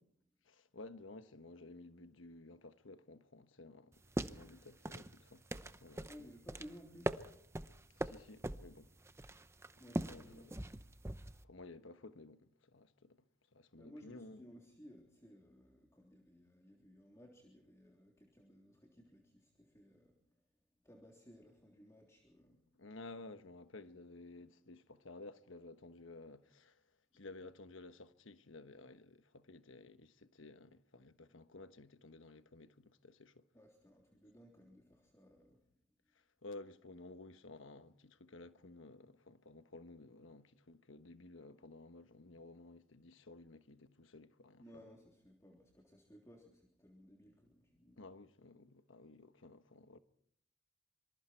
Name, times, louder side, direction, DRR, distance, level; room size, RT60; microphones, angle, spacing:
voice 1, 0.4-4.0 4.3-5.4 5.8-6.1 7.9-8.9 10.1-10.5 11.4-13.2 13.5-14.4 22.8-26.8 27.1-33.4 36.1-44.8 48.0-50.0, left 2 dB, 85° left, 1.2 m, -54 dB
sound 1, 3.9-11.4, right 1 dB, 15° right, 0.8 m, -42 dB
voice 2, 6.1-7.2 9.8-10.5 13.7-20.4 20.8-22.6 33.5-35.6 44.6-48.0, equal, 15° left, 3.4 m, -59 dB
26.5 x 25.0 x 4.5 m
head